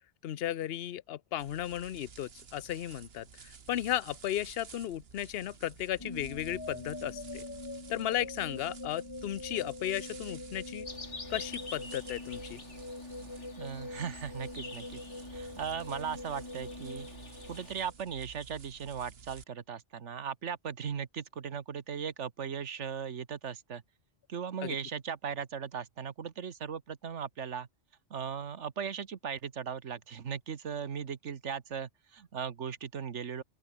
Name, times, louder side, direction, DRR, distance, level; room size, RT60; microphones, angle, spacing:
voice 1, 0.2-7.4 7.9-10.9 11.3-12.6 24.6-24.7, left 12 dB, 60° left, 0.9 m, -35 dB
sound 1, 1.4-19.4, right 6 dB, 55° right, 1.4 m, -53 dB
sound 2, 6.0-18.1, left 2 dB, 20° left, 1.8 m, -44 dB
sound 3, 10.9-17.7, left 3 dB, 75° left, 3.9 m, -48 dB
voice 2, 13.6-15.0 15.3-17.1 17.5-23.8 24.3-27.7 28.1-33.4, right 7 dB, 80° right, 1.5 m, -38 dB
open air
omnidirectional pair, 1.2 m